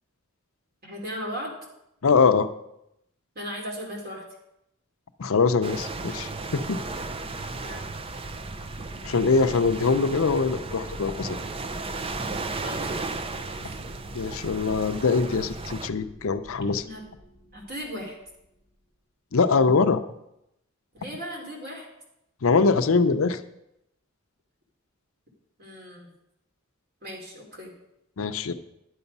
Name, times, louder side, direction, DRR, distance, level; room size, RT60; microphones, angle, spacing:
voice 1, 0.8-1.5 3.3-4.2 7.2-7.8 12.6-13.8 16.8-17.0 17.5-18.2 20.9-21.9 25.6-26.1 27.0-27.7, equal, 45° right, -1 dB, 3.0 m, -37 dB
voice 2, 2.0-2.5 5.2-6.8 9.0-11.4 14.1-16.8 19.3-20.0 22.4-23.4 28.2-28.5, left 4 dB, 70° left, 9 dB, 0.6 m, -23 dB
sound 1, 5.6-15.9, right 3 dB, 25° right, 0.5 m, -35 dB
sound 2, 6.6-18.8, equal, 65° right, 2.2 m, -46 dB
11.5 x 7.0 x 5.4 m, 0.83 s
head